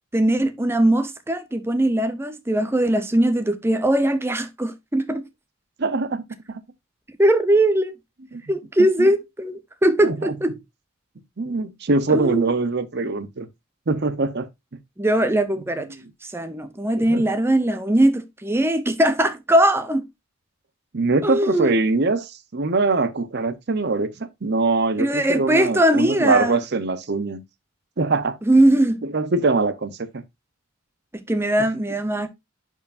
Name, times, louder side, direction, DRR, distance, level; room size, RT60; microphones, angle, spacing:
voice 1, 0.1-5.2 7.2-7.9 8.5-10.6 12.1-12.5 15.0-15.9 16.2-20.0 21.2-21.8 25.0-26.6 28.4-29.0 31.3-32.3, right 1 dB, 10° right, 0.7 m, -20 dB
voice 2, 5.8-6.2 6.5-6.6 8.3-8.4 9.0-9.1 10.0-10.3 11.4-13.5 13.9-14.5 17.0-17.2 20.9-27.4 28.0-28.4 29.0-30.2, right 3 dB, 50° right, 0.7 m, -23 dB
11.0 x 4.6 x 2.5 m
head